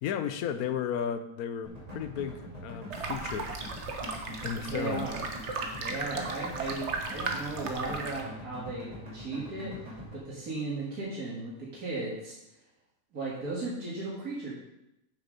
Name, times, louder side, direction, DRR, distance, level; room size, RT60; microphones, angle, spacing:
voice 1, 0.0-3.5 4.4-5.1, left 8 dB, 85° left, 10 dB, 1.2 m, -34 dB
sound 1, 1.6-10.1, equal, 25° right, 2.6 m, -43 dB
sound 2, 2.9-8.2, right 4 dB, 55° right, 1.3 m, -36 dB
voice 2, 4.7-5.3 5.8-12.4 13.1-14.5, right 3 dB, 85° right, -6 dB, 2.3 m, -36 dB
7.6 x 6.8 x 5.2 m, 0.88 s
omnidirectional pair, 1.5 m